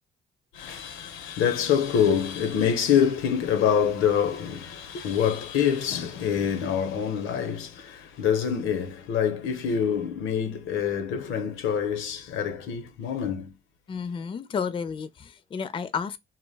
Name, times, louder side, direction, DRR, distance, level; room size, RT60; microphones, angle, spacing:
voice 1, 0.5-13.5, left 8 dB, 85° left, 0.5 m, -26 dB
voice 2, 13.9-16.2, left 6 dB, 25° left, 0.3 m, -31 dB
2.1 x 2.0 x 3.2 m
cardioid pair, 90°, 20 cm